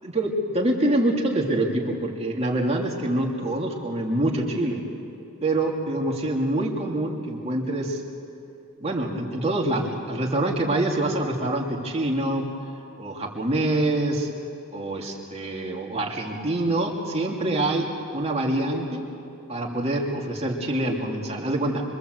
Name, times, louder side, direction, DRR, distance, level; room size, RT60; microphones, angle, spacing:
voice 1, 0.0-4.8 5.4-8.0 8.8-12.5 13.0-14.3 14.7-19.0 19.5-21.8, right 1 dB, 30° right, -1 dB, 2.8 m, -25 dB
25.0 x 24.5 x 7.9 m, 2.8 s
head